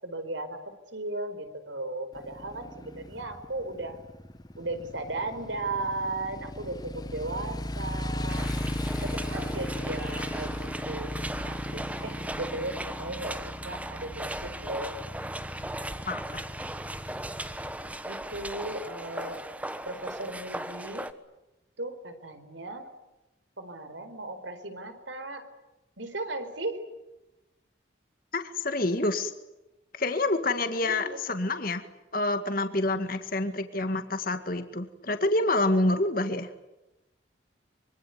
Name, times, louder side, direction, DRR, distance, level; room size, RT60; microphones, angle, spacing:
voice 1, 0.0-4.0 4.6-8.5 9.0-15.0 18.0-19.4 19.8-21.1 21.8-22.9 23.6-25.5 26.0-26.9 30.8-31.2, right 2 dB, 80° right, 9 dB, 4.6 m, -36 dB
Motorcycle, 2.1-17.9, left 1 dB, 20° left, 1.1 m, -37 dB
sound 1, 8.3-21.1, right 1 dB, 10° right, 1.2 m, -38 dB
voice 2, 16.1-16.4 28.3-29.3 30.0-31.8 32.1-36.5, left 2 dB, 50° left, 8 dB, 2.0 m, -27 dB
25.5 x 24.0 x 9.5 m, 0.98 s
head